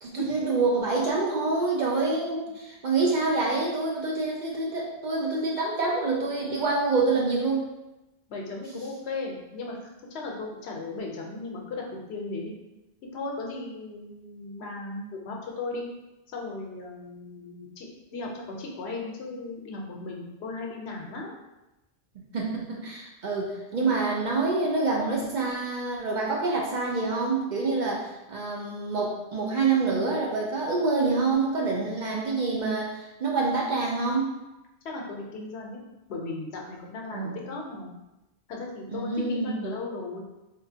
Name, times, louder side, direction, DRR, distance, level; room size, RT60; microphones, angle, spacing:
voice 1, 0.0-7.7 22.2-34.3 37.1-37.4 38.9-39.7, right 3 dB, 55° right, -2 dB, 0.6 m, -27 dB
voice 2, 8.3-11.8 12.1-12.5 13.1-15.9 16.3-21.3 34.8-35.8 36.1-37.9 38.5-40.2, left 3 dB, 85° left, 0 dB, 0.9 m, -36 dB
3.7 x 2.5 x 2.7 m, 0.98 s
omnidirectional pair, 1.1 m